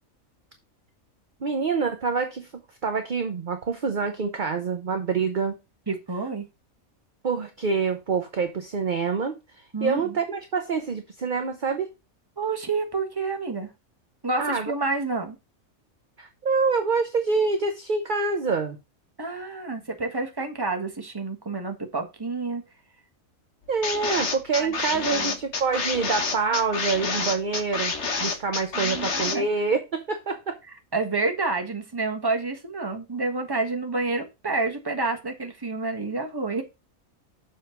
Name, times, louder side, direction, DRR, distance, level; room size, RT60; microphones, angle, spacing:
voice 1, 1.4-2.5 2.8-5.6 7.2-11.9 14.4-14.7 16.2-18.8 23.7-27.9 28.2-30.6, right 4 dB, 40° right, 6 dB, 0.9 m, -26 dB
voice 2, 5.9-6.4 9.7-10.2 12.4-13.7 14.2-15.4 19.2-22.6 24.6-25.3 28.7-29.4 30.9-36.6, right 3 dB, 15° right, 4 dB, 1.4 m, -29 dB
sound 1, 23.8-29.4, left 4 dB, 55° left, 1.5 m, -28 dB
7.0 x 4.5 x 5.8 m, 0.24 s
omnidirectional pair, 1.5 m